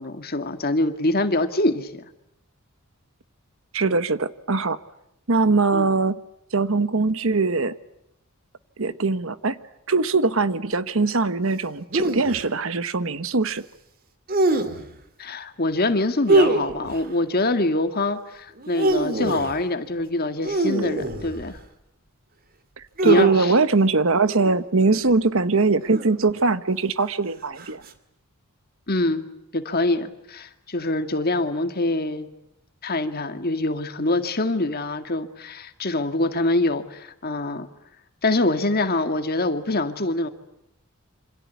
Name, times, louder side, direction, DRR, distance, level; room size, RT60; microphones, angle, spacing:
voice 1, 0.0-2.1 5.7-5.9 15.2-21.6 23.0-23.5 28.9-29.2 29.5-32.3 32.8-37.7 38.2-40.3, left 2 dB, 45° left, 8 dB, 2.0 m, -24 dB
voice 2, 3.7-4.8 5.3-6.2 6.5-7.7 8.8-9.6 9.9-13.6 23.0-27.8, right 3 dB, 65° right, 14 dB, 1.2 m, -21 dB
sound 1, 11.9-12.4 14.3-14.9 16.3-17.1 18.6-19.6 20.4-21.6 23.0-23.5 24.3-24.6 25.8-26.4 27.6-27.9, right 2 dB, 40° right, 2.3 m, -24 dB
27.5 x 26.5 x 8.3 m, 0.80 s
head